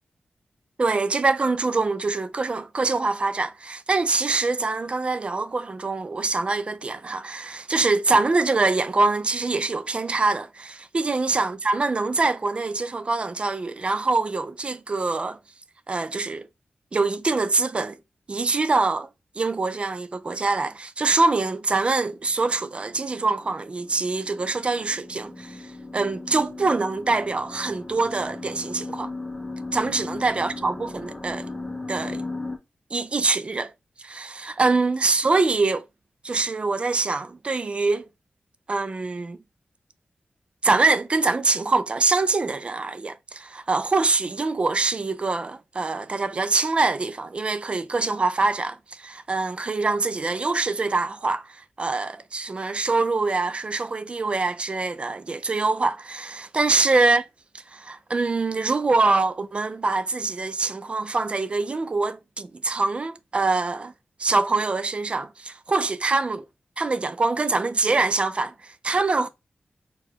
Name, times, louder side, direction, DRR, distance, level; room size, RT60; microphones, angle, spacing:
voice 1, 0.8-15.4 15.9-16.5 16.9-18.0 18.3-19.1 19.4-29.1 29.7-31.5 31.9-32.2 32.9-33.7 34.0-35.9 36.2-38.0 38.7-39.4 40.6-57.2 57.7-63.9 64.2-66.4 66.8-69.3, right 3 dB, 35° right, 0.4 m, -24 dB
sound 1, 22.2-32.6, left 2 dB, 5° left, 0.9 m, -37 dB
4.6 x 2.3 x 3.8 m
wide cardioid pair, 135°, 3 cm